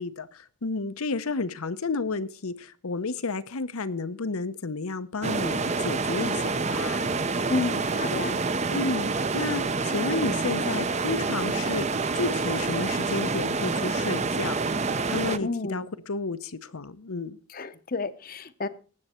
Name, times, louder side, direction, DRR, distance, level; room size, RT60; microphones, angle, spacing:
voice 1, 0.0-7.1 8.7-14.6 15.1-17.4, left 3 dB, 80° left, 0.8 m, -31 dB
sound 1, 5.2-15.4, right 3 dB, 30° right, 0.6 m, -27 dB
voice 2, 7.5-8.4 15.4-15.9 17.5-18.7, left 3 dB, 40° left, 0.8 m, -30 dB
18.5 x 7.9 x 4.3 m
head